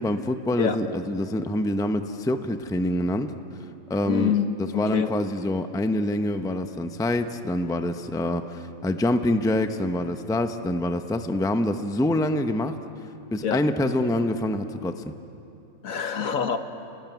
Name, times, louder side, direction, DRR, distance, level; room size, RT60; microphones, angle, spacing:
voice 1, 0.0-3.3 3.9-4.3 4.6-12.8 13.3-15.0, left 1 dB, 5° left, 8 dB, 0.6 m, -26 dB
voice 2, 4.1-5.1 13.4-13.6 15.8-16.6, left 7 dB, 75° left, 8 dB, 1.7 m, -26 dB
29.5 x 20.0 x 9.2 m, 2.8 s
omnidirectional pair, 1.4 m